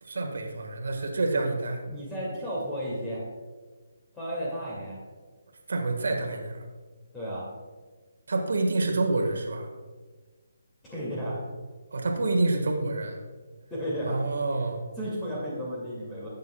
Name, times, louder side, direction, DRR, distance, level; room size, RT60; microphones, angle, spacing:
voice 1, 0.0-1.8 5.7-6.7 8.3-9.7 11.9-13.2 14.0-14.8, right 2 dB, 70° right, 3 dB, 1.5 m, -28 dB
voice 2, 1.9-3.2 4.1-5.0 7.1-7.5 10.8-11.4 13.7-14.2 15.0-16.3, equal, 10° left, -7 dB, 2.1 m, -33 dB
13.0 x 8.4 x 2.2 m, 1.3 s
hypercardioid pair, 155°, 0 cm